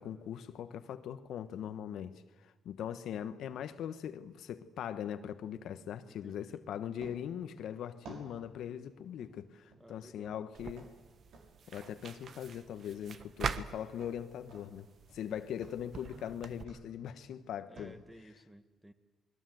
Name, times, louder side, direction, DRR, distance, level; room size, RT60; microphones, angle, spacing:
voice 1, 0.0-10.9 11.7-14.9 15.1-17.9, left 9 dB, 75° left, 1.3 m, -41 dB
voice 2, 6.1-6.6 9.8-10.4 17.1-17.3 17.7-18.9, equal, 5° right, 1.9 m, -55 dB
sound 1, 7.0-17.9, right 3 dB, 80° right, 6.0 m, -57 dB
sound 2, 10.5-16.6, right 6 dB, 55° right, 1.3 m, -44 dB
28.0 x 21.0 x 7.9 m
cardioid pair, 90°, 0 cm